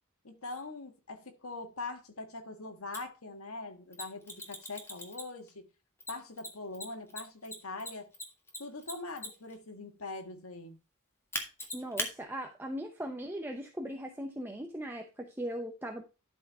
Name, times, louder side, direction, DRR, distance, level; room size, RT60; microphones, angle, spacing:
voice 1, 0.2-5.6 6.1-8.1 8.6-10.8, left 3 dB, 80° left, 1.6 m, -42 dB
Mechanisms, 2.9-3.0 3.9-5.5 6.0-9.5 11.3-12.1, left 1 dB, 10° left, 1.6 m, -39 dB
voice 2, 11.7-16.0, equal, 10° right, 0.7 m, -39 dB
12.0 x 4.6 x 4.3 m
head